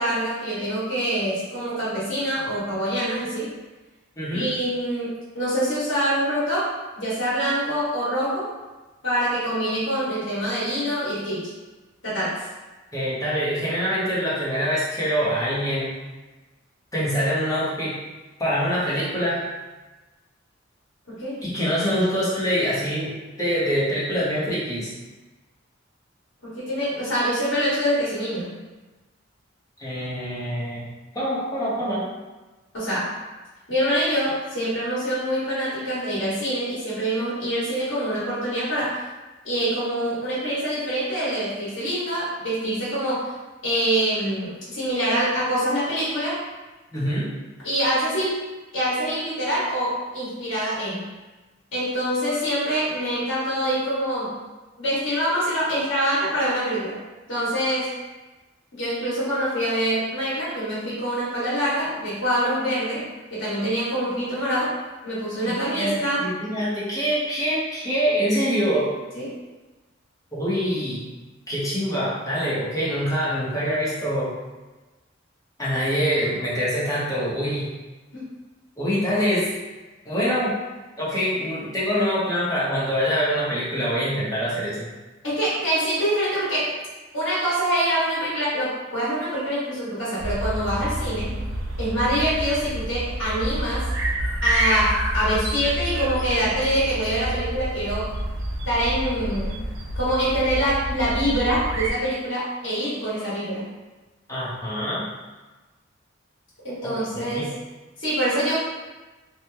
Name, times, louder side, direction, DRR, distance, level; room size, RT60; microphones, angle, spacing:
voice 1, 0.0-3.5 4.3-8.5 9.0-11.5 12.0-12.4 21.1-21.4 26.4-28.5 32.7-33.1 33.7-39.0 39.4-43.3 43.6-46.4 47.6-48.4 48.7-51.0 51.7-54.3 54.8-57.0 57.3-57.9 58.7-63.0 63.3-64.7 65.0-66.2 69.1-69.3 78.1-78.3 85.2-86.7 87.1-91.3 91.8-93.8 94.4-98.1 98.6-99.6 99.9-103.6 106.6-107.5 108.0-108.6, equal, 75° left, -9 dB, 1.5 m, -25 dB
voice 2, 4.2-4.5 12.9-15.9 16.9-18.0 18.4-19.5 21.4-24.9 29.8-30.9 31.1-32.1 46.9-47.3 65.4-68.9 70.3-71.1 71.5-74.3 75.6-77.7 78.8-79.5 80.1-80.6 81.0-84.9 104.3-105.1 106.8-107.5, equal, 20° left, -8 dB, 0.9 m, -25 dB
sound 1, 90.2-101.9, right 1 dB, 75° right, 0.5 m, -28 dB
2.9 x 2.2 x 3.4 m, 1.2 s
head